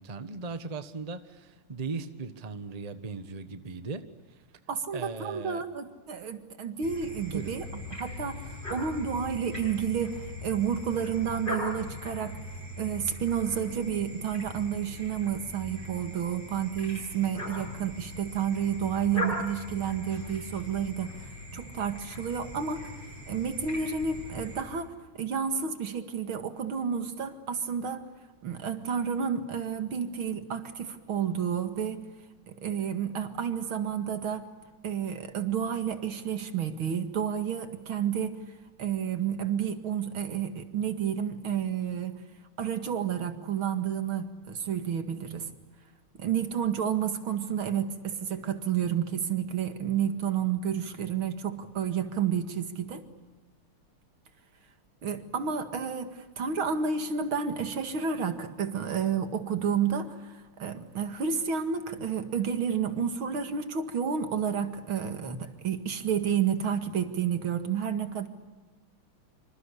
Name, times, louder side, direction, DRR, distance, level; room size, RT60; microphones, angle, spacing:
voice 1, 0.0-4.4 4.9-5.7 7.3-7.5, right 4 dB, 20° right, 10 dB, 1.1 m, -38 dB
voice 2, 4.7-12.4 12.8-21.1 21.5-22.9 23.3-28.1 28.4-32.1 32.5-34.5 34.8-38.4 38.8-42.2 42.6-45.5 46.2-53.1 55.0-68.3, right 7 dB, 70° right, 8 dB, 2.7 m, -30 dB
sound 1, 6.8-24.6, left 1 dB, 20° left, 8.2 m, -40 dB
26.5 x 26.0 x 8.4 m, 1.3 s
omnidirectional pair, 2.4 m